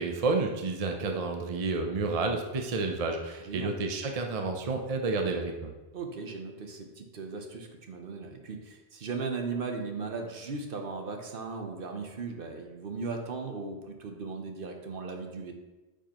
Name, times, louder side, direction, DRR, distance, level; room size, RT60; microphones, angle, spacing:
voice 1, 0.0-5.7, right 3 dB, 40° right, 3 dB, 0.6 m, -30 dB
voice 2, 3.4-3.7 5.9-15.5, right 4 dB, 60° right, 4 dB, 1.0 m, -37 dB
9.0 x 4.7 x 2.9 m, 1.1 s
omnidirectional pair, 1.1 m